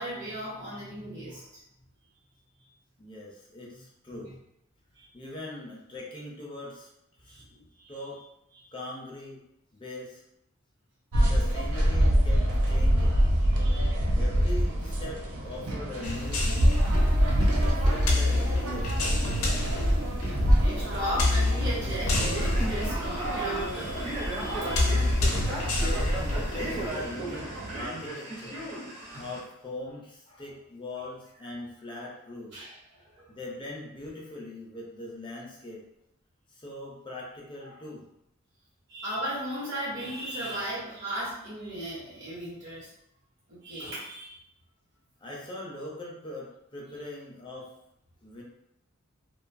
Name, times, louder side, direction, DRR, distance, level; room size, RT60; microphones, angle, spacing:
voice 1, 0.0-1.4 4.9-5.1 7.3-8.0 13.5-14.0 20.6-24.9 29.0-29.1 32.5-33.2 38.9-42.9 43.5-44.4, equal, 55° right, -9 dB, 0.9 m, -36 dB
voice 2, 3.0-4.3 5.1-6.9 7.2-7.4 7.9-8.2 8.7-9.4 9.7-10.2 11.2-13.3 14.1-16.7 17.5-18.9 25.7-28.6 29.2-32.5 33.2-35.8 36.5-38.0 45.2-47.7 48.2-48.4, left 2 dB, 25° left, -3 dB, 0.4 m, -41 dB
sound 1, 11.1-27.9, equal, 90° right, 0.5 m, -26 dB
sound 2, 16.0-26.9, left 2 dB, 90° left, 0.5 m, -29 dB
Male speech man speaking, 22.1-29.4, right 1 dB, 30° right, 0.6 m, -36 dB
2.5 x 2.2 x 2.5 m, 0.80 s
head